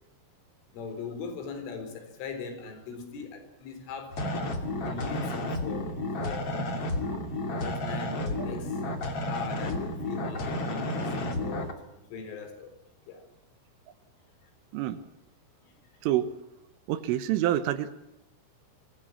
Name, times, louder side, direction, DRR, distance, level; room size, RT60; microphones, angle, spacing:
voice 1, 0.7-4.2 4.8-5.9 6.2-7.2 7.5-8.8 9.3-12.8 13.1-13.3 14.4-14.5, left 5 dB, 75° left, 8 dB, 6.5 m, -40 dB
sound 1, 4.1-11.7, left 1 dB, 35° left, 2.8 m, -32 dB
voice 2, 16.9-17.9, right 13 dB, 80° right, 10 dB, 3.8 m, -27 dB
25.5 x 20.0 x 7.3 m, 0.85 s
omnidirectional pair, 5.7 m